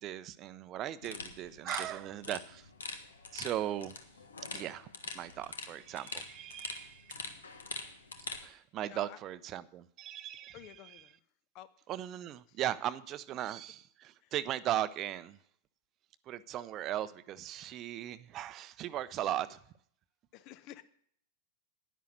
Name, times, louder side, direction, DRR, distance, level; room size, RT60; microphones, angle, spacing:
voice 1, 0.0-2.7 3.3-3.9 4.5-4.9 5.1-7.2 8.4-10.6 11.9-15.4 16.3-19.6, right 12 dB, 35° right, 14 dB, 0.6 m, -38 dB
sound 1, 1.0-8.4, left 4 dB, 70° left, 1.4 m, -44 dB
voice 2, 8.9-9.2 10.5-11.2 11.5-11.7 12.5-12.6 14.2-14.3 20.3-20.8, left 12 dB, 40° left, 15 dB, 0.8 m, -51 dB
10.5 x 10.0 x 6.4 m, 0.63 s
figure-of-eight pair, 90°, 0 cm